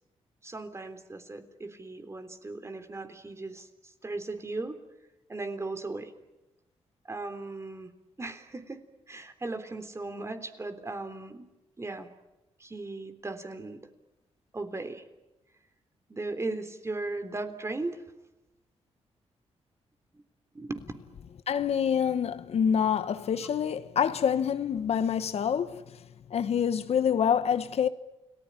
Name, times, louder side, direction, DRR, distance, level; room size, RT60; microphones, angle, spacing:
voice 1, 0.4-3.7 4.0-4.8 5.3-6.1 7.1-7.9 8.2-8.8 9.1-11.5 11.8-12.1 12.6-13.8 14.5-15.0 16.1-18.0 20.5-20.8, right 2 dB, 25° right, 3.5 m, -37 dB
voice 2, 21.5-26.0 26.3-27.9, left 8 dB, 65° left, 1.3 m, -26 dB
30.0 x 19.0 x 10.0 m
cardioid pair, 95°, 11 cm